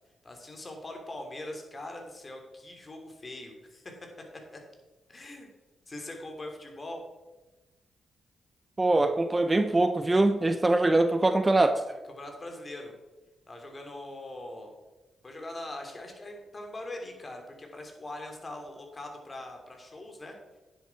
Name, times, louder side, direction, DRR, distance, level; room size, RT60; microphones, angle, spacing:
voice 1, 0.2-3.8 4.5-4.6 5.1-5.5 5.9-7.0 12.2-12.9 13.5-14.7 15.2-20.4, left 1 dB, 35° left, 3 dB, 2.9 m, -42 dB
voice 2, 8.8-11.9, right 2 dB, 25° right, 9 dB, 0.7 m, -23 dB
9.9 x 8.0 x 4.6 m, 1.1 s
supercardioid pair, 55°, 0 cm